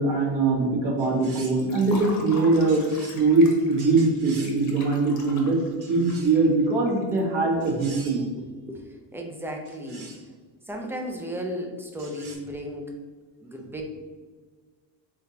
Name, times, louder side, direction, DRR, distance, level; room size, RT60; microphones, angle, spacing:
voice 1, 0.0-2.9 3.1-5.6 5.9-8.2, right 3 dB, 55° right, -3 dB, 1.3 m, -22 dB
sound 1, 1.0-1.7 2.7-3.2 3.8-4.6 5.8-6.5 7.6-8.3 9.6-10.3 12.0-12.4, right 3 dB, 80° right, 1.2 m, -45 dB
Liquid, 1.6-7.7, left 2 dB, 35° left, 0.9 m, -43 dB
voice 2, 8.4-10.1 10.7-12.9 13.4-13.8, equal, 5° right, 1 dB, 0.3 m, -35 dB
3.7 x 3.6 x 2.8 m, 1.4 s
supercardioid pair, 105°, 49 cm